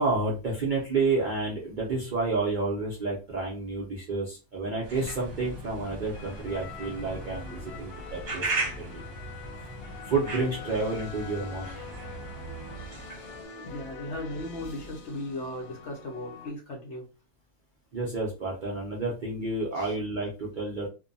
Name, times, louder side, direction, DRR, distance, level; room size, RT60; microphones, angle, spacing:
voice 1, 0.0-9.0 9.6-9.7 10.1-11.7 17.9-20.9, right 3 dB, 65° right, -3 dB, 0.4 m, -30 dB
sound 1, 4.8-13.4, right 3 dB, 45° right, 1.0 m, -38 dB
sound 2, 6.1-16.5, left 4 dB, 80° left, 1.1 m, -44 dB
voice 2, 13.5-17.1 19.8-19.9, left 1 dB, 60° left, 0 dB, 0.9 m, -37 dB
2.6 x 2.2 x 2.6 m, 0.31 s
omnidirectional pair, 1.6 m